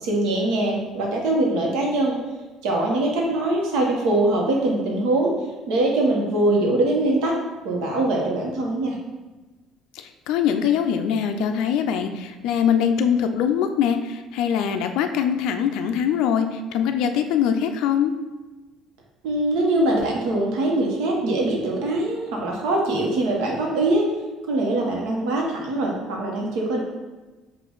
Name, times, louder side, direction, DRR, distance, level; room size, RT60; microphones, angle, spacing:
voice 1, 0.0-2.2 2.6-5.3 5.7-7.3 7.6-9.0 19.2-24.1 24.5-26.8, right 2 dB, 80° right, -1 dB, 1.1 m, -22 dB
voice 2, 9.9-18.1, left 8 dB, 70° left, 6 dB, 0.3 m, -22 dB
5.1 x 2.5 x 3.8 m, 1.2 s
cardioid pair, 175°, 0 cm